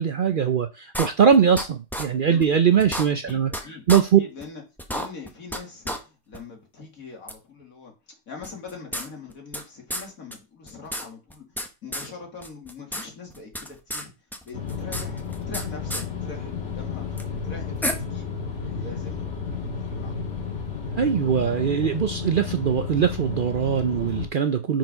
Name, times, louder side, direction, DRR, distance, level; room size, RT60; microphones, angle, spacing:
voice 1, 0.0-3.5 3.9-4.2 21.0-24.8, right 7 dB, 60° right, 0.5 m, -21 dB
sound 1, 0.9-1.6 1.9-2.0 2.4-2.5 2.8-3.6 3.9-4.0 4.4-4.5 4.8-5.6 5.8-6.0 6.3-6.4 7.3-7.4 8.4-9.6 9.9-10.0 10.3-10.4 10.7-11.7 11.9-12.1 12.4-13.0 13.3-14.0 14.3-15.6 15.9-16.0 17.2-17.3 17.8-17.9, equal, ahead, 0.8 m, -31 dB
voice 2, 3.1-3.8 4.2-4.6 4.9-11.5 11.8-14.1 14.4-18.3 18.6-20.4, left 4 dB, 90° left, 2.7 m, -42 dB
sound 2, 14.5-24.3, left 5 dB, 55° left, 2.0 m, -32 dB
6.1 x 4.6 x 5.2 m
omnidirectional pair, 1.4 m